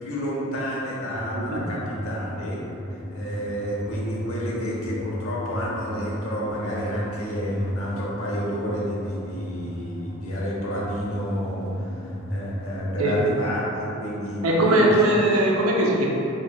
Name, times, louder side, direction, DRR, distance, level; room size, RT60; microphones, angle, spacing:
voice 1, 0.0-2.6 3.1-15.1, equal, 90° left, -5 dB, 0.9 m, -30 dB
sound 1, 1.1-13.2, equal, 70° right, 1.2 m, -34 dB
voice 2, 14.4-16.1, right 1 dB, 90° right, -2 dB, 0.6 m, -20 dB
4.4 x 3.6 x 2.2 m, 2.8 s
head